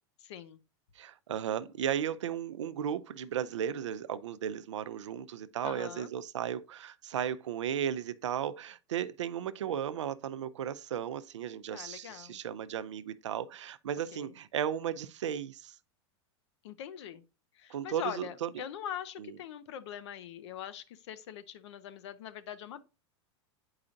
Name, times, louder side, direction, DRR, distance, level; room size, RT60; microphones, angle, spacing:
voice 1, 0.2-0.6 5.6-6.1 11.7-12.4 14.1-14.3 16.6-17.2 17.6-22.8, left 10 dB, 70° left, 0.8 m, -42 dB
voice 2, 1.0-15.8 17.7-18.5 19.2-19.3, right 9 dB, 85° right, 0.6 m, -35 dB
8.5 x 4.8 x 2.5 m
hypercardioid pair, 115°, 15 cm